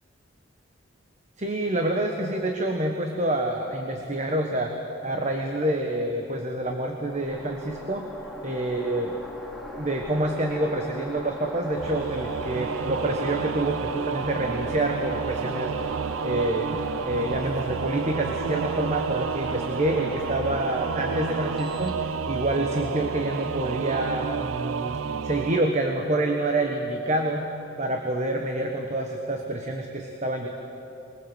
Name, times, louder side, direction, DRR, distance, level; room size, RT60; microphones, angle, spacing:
voice 1, 1.4-4.7 5.0-8.1 8.4-9.1 9.7-15.9 16.2-25.0 25.2-27.5 27.8-30.5, right 1 dB, 35° right, 3 dB, 1.3 m, -27 dB
sound 1, 7.1-22.6, equal, ahead, 2.3 m, -39 dB
Singing / Musical instrument, 11.8-25.6, right 6 dB, 90° right, 0.5 m, -30 dB
22.0 x 20.0 x 7.9 m, 2.9 s
head